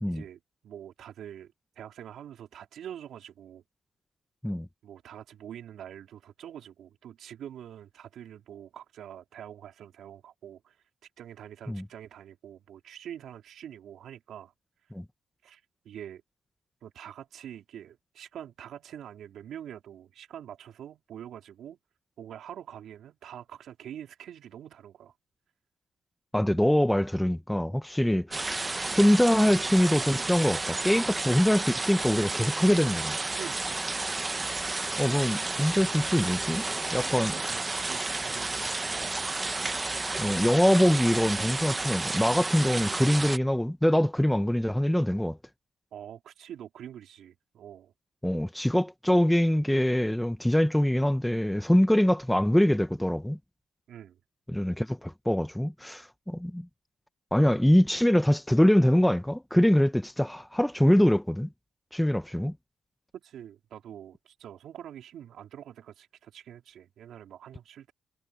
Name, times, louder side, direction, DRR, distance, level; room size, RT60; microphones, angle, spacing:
voice 1, 0.1-3.6 4.8-10.8 11.2-14.5 15.4-16.2 16.8-21.8 22.2-25.1 33.3-33.8 37.1-39.9 45.9-47.9 53.9-54.2 63.2-67.9, right 10 dB, 70° right, 4.1 m, -45 dB
voice 2, 26.3-28.5 29.0-33.2 35.0-36.6 36.9-37.3 40.2-45.4 48.2-53.4 54.5-56.7 57.3-61.5 61.9-62.5, equal, 5° left, 0.9 m, -24 dB
sound 1, 28.3-43.4, right 3 dB, 20° right, 1.0 m, -31 dB
cardioid pair, 90°, 0 cm